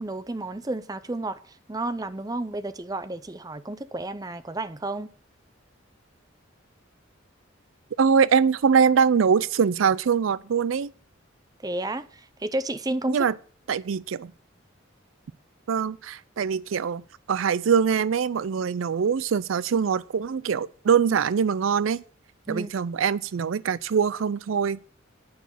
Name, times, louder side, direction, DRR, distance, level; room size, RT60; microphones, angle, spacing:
voice 1, 0.0-1.4 1.7-5.1 11.6-13.3 22.5-22.7, right 2 dB, 20° right, 0.6 m, -31 dB
voice 2, 8.0-10.9 13.1-13.4 13.7-14.3 15.7-22.0 22.5-24.8, right 6 dB, 80° right, 0.4 m, -23 dB
9.5 x 6.1 x 8.3 m
head